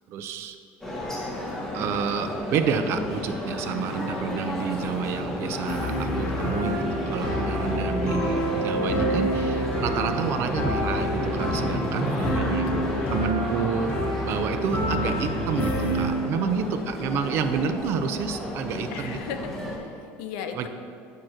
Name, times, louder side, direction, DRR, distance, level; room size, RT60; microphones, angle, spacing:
voice 1, 0.1-0.6 1.7-6.8 7.1-12.8 13.1-13.9 14.2-19.2 20.5-20.7, right 6 dB, 50° right, 8 dB, 0.5 m, -29 dB
sound 1, 0.8-19.8, equal, 10° left, 1.5 m, -32 dB
sound 2, 5.7-16.1, equal, 30° left, 1.5 m, -28 dB
voice 2, 7.7-8.5 12.0-13.4 16.3-17.3 18.9-20.7, left 6 dB, 85° left, 6 dB, 0.6 m, -38 dB
8.7 x 3.0 x 6.4 m, 2.5 s
cardioid pair, 135°, 5 cm